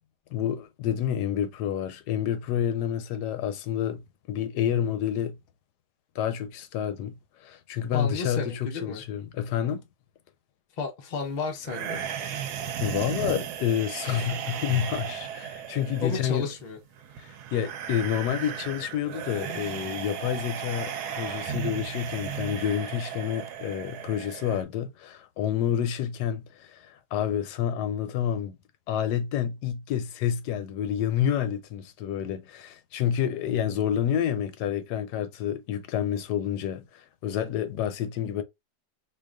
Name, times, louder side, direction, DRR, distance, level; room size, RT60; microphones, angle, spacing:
voice 1, 0.3-5.4 6.1-7.2 7.4-9.8 12.8-16.5 17.2-28.5 28.9-38.4, left 9 dB, 75° left, 1.1 m, -29 dB
voice 2, 7.9-9.0 10.8-12.0 16.0-16.8, left 5 dB, 60° left, 0.4 m, -32 dB
sound 1, 11.6-24.6, right 8 dB, 70° right, 1.1 m, -35 dB
4.1 x 2.8 x 2.3 m
omnidirectional pair, 1.8 m